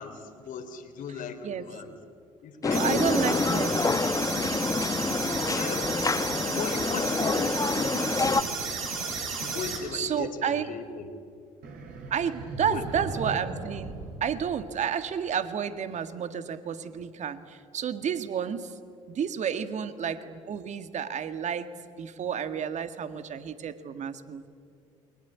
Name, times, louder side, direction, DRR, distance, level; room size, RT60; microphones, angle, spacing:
voice 1, 0.0-2.0 2.4-3.1 5.0-6.0 6.5-7.5 7.8-8.5 9.4-11.1 12.6-13.1, left 6 dB, 55° left, 7 dB, 3.3 m, -38 dB
sound 1, 2.6-8.4, left 4 dB, 20° left, 1.1 m, -27 dB
voice 2, 2.7-4.0 9.9-10.7 12.1-13.9 14.2-18.7 19.1-21.7 22.0-24.5, right 8 dB, 45° right, 11 dB, 1.9 m, -31 dB
sound 2, 2.7-9.8, right 4 dB, 85° right, 5.3 m, -33 dB
sound 3, 11.6-15.1, right 3 dB, 60° right, 5.1 m, -38 dB
28.5 x 23.0 x 8.5 m, 2.3 s
hypercardioid pair, 60°, 17 cm